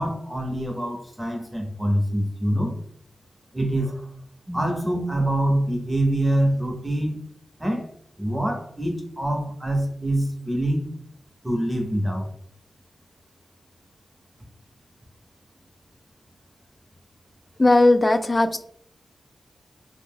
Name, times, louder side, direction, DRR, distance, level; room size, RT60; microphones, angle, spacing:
voice 1, 0.0-2.7 3.5-4.1 4.5-7.2 7.6-7.9 8.2-10.9 11.4-12.3, right 1 dB, 15° right, 2 dB, 0.7 m, -25 dB
voice 2, 17.6-18.6, left 2 dB, 30° left, 8 dB, 0.3 m, -17 dB
2.4 x 2.0 x 3.6 m, 0.65 s
cardioid pair, 55°, 0 cm